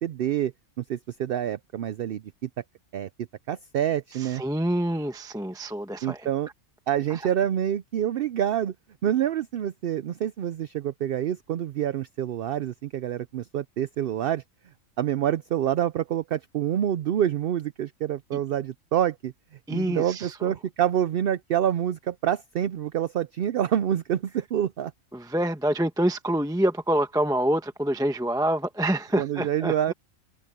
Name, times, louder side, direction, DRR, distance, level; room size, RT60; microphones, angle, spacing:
voice 1, 0.0-2.5 2.9-3.1 3.5-4.4 6.0-6.5 6.9-8.7 9.0-14.4 15.0-19.3 19.7-24.9 29.2-29.9, right 10 dB, 65° right, 0.6 m, -27 dB
voice 2, 4.2-6.3 7.1-7.2 19.7-20.5 25.1-29.9, right 1 dB, 5° right, 0.9 m, -26 dB
omnidirectional pair, 1.4 m